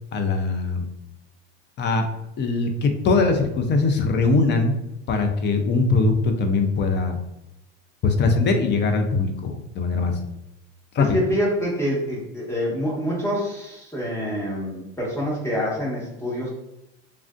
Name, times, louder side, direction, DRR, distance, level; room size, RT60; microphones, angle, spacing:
voice 1, 0.1-0.9 1.8-2.1 2.4-4.7 5.1-7.2 8.0-10.2 10.9-11.2, left 3 dB, 35° left, 6 dB, 0.5 m, -21 dB
voice 2, 11.0-16.5, equal, 10° left, -4 dB, 1.2 m, -26 dB
3.3 x 2.5 x 2.4 m, 0.89 s
supercardioid pair, 105°, 34 cm